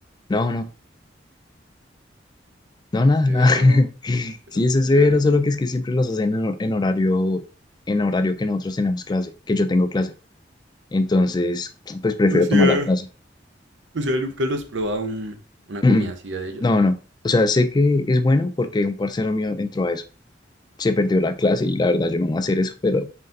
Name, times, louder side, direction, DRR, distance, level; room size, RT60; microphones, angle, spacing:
voice 1, 0.3-0.7 2.9-7.4 7.9-10.1 10.9-13.0 15.8-16.1 16.6-17.0 17.2-20.0 20.8-23.1, left 2 dB, 25° left, 10 dB, 0.3 m, -20 dB
voice 2, 3.3-3.8 4.5-4.6 4.9-5.2 12.3-12.9 13.9-15.4 15.7-16.7, equal, 85° right, 7 dB, 0.7 m, -26 dB
4.2 x 3.9 x 2.6 m, 0.34 s
head